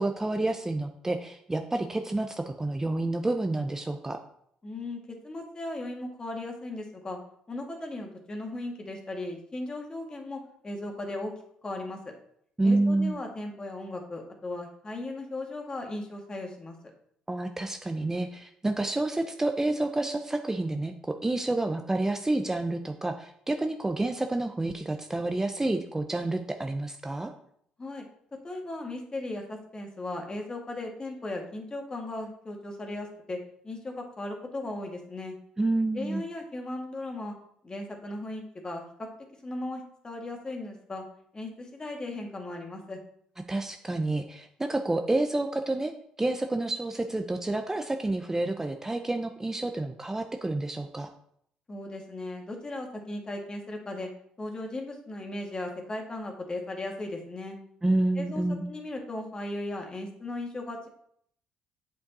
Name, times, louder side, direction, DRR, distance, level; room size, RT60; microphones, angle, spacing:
voice 1, 0.0-4.2 12.6-13.2 17.3-27.3 35.6-36.2 43.5-45.9 46.2-51.1 57.8-58.7, right 2 dB, 15° right, 6 dB, 0.7 m, -29 dB
voice 2, 4.6-7.2 7.5-11.3 11.6-12.0 12.6-16.8 27.8-28.1 28.4-33.4 33.6-35.4 35.9-37.3 37.6-39.1 39.4-41.0 41.3-43.0 51.7-54.1 54.4-57.6 58.2-60.9, left 2 dB, 30° left, 2 dB, 2.0 m, -37 dB
7.8 x 5.2 x 4.1 m, 0.68 s
supercardioid pair, 65°, 3 cm